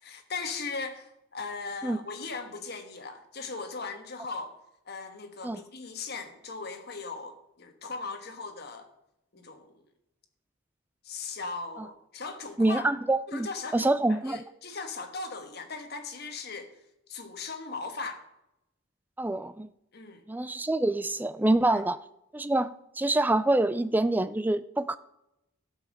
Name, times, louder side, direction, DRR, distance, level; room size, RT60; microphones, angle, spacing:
voice 1, 0.0-4.5 4.9-8.9 9.3-9.7 11.0-12.9 13.3-16.7 17.1-18.2 19.9-20.2 21.7-21.8, left 4 dB, 50° left, 1.4 m, -38 dB
voice 2, 12.6-13.5 13.7-14.4 19.2-19.7 20.3-22.0 22.3-25.0, right 2 dB, 10° right, 0.3 m, -26 dB
12.5 x 5.5 x 7.4 m
head